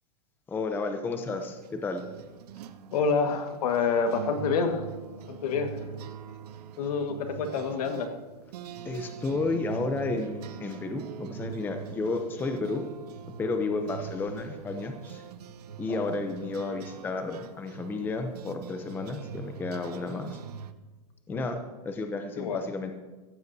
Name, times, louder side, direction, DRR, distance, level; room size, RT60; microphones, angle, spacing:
voice 1, 0.5-2.0 8.8-12.8 13.4-15.2 15.8-20.4 21.3-21.6 21.8-22.9, left 3 dB, 10° left, 6 dB, 0.7 m, -32 dB
sound 1, 1.3-20.7, right 7 dB, 75° right, 0.9 m, -43 dB
voice 2, 2.9-4.9 5.3-5.8 6.8-8.2 15.9-16.1 21.3-21.4 22.4-22.6, left 5 dB, 65° left, 5 dB, 1.7 m, -28 dB
15.5 x 14.5 x 2.8 m, 1.2 s
supercardioid pair, 155°, 20 cm